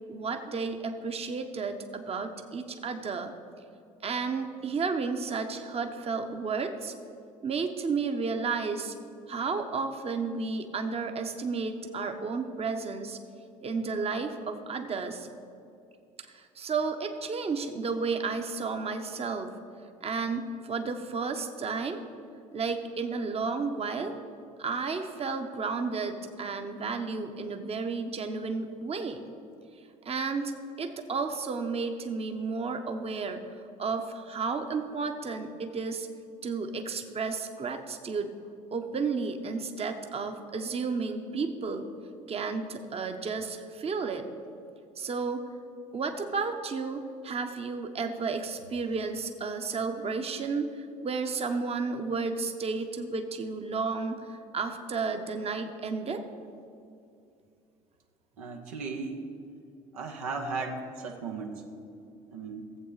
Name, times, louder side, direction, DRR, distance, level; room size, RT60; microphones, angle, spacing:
voice 1, 0.1-3.3 4.0-6.9 7.4-8.9 9.3-13.2 13.6-15.3 16.3-19.6 20.0-22.0 22.5-24.2 24.6-29.2 30.0-30.5 30.8-33.5 33.8-36.1 36.4-38.3 38.7-41.9 42.3-44.3 45.0-45.4 45.9-56.2, right 4 dB, 35° right, 6 dB, 1.0 m, -32 dB
voice 2, 58.4-59.2 59.9-61.6 62.3-62.7, right 4 dB, 85° right, 2 dB, 1.0 m, -36 dB
15.5 x 7.8 x 4.0 m, 2.5 s
hypercardioid pair, 55°, 18 cm